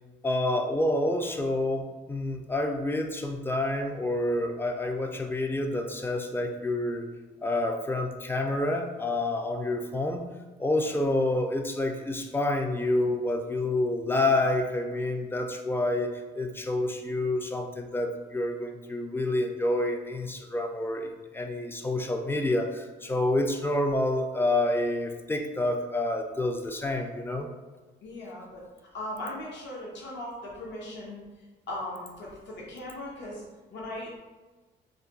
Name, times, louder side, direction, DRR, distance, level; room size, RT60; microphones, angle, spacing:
voice 1, 0.2-7.1 7.4-10.2 10.6-27.5, left 1 dB, 10° left, 4 dB, 0.3 m, -28 dB
voice 2, 28.0-28.6 28.9-31.2 31.7-33.4 33.7-34.2, left 1 dB, 65° left, -4 dB, 0.8 m, -38 dB
2.3 x 2.2 x 3.8 m, 1.2 s
cardioid pair, 90°, 20 cm